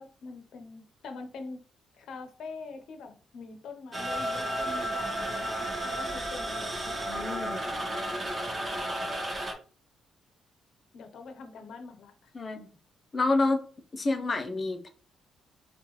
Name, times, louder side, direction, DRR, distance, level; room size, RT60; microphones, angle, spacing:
voice 1, 0.0-1.6 2.0-5.3 5.8-6.8 10.9-12.3, left 4 dB, 70° left, 0.8 m, -44 dB
sound 1, 3.9-9.5, right 1 dB, 25° right, 1.3 m, -32 dB
voice 2, 6.9-7.6 12.3-12.7 13.1-13.6 13.9-14.9, left 2 dB, 35° left, 0.8 m, -28 dB
4.4 x 2.5 x 3.1 m
cardioid pair, 90°, 0 cm